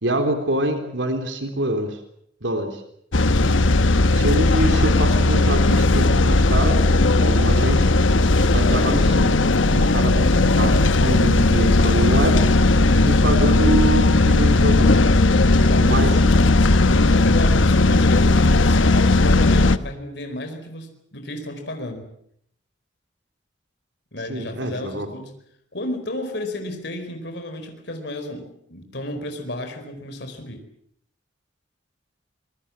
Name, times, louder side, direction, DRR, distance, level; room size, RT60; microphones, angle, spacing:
voice 1, 0.0-2.0 2.4-2.8 4.1-6.8 7.2-7.9 8.4-9.4 9.7-12.4 13.0-15.0 15.8-16.1 24.3-25.1, right 1 dB, 70° right, 6 dB, 3.7 m, -25 dB
sound 1, 3.1-19.8, left 2 dB, 90° left, 1.1 m, -16 dB
voice 2, 12.9-13.2 15.5-16.4 16.9-22.1 24.1-25.3 25.7-30.6, left 1 dB, 60° left, 5 dB, 4.6 m, -32 dB
27.0 x 21.5 x 7.5 m, 0.71 s
head